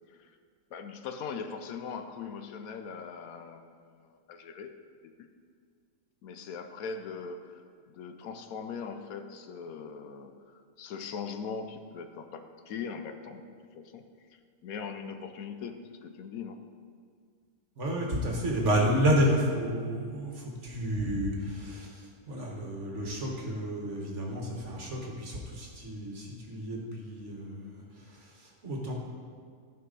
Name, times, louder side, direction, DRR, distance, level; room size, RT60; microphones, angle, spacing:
voice 1, 0.7-4.7 5.2-5.3 6.2-14.0 14.3-16.6, left 5 dB, 70° left, 7 dB, 1.0 m, -41 dB
voice 2, 17.8-28.9, equal, 50° right, -1 dB, 1.7 m, -31 dB
14.5 x 5.3 x 4.0 m, 2.1 s
omnidirectional pair, 1.6 m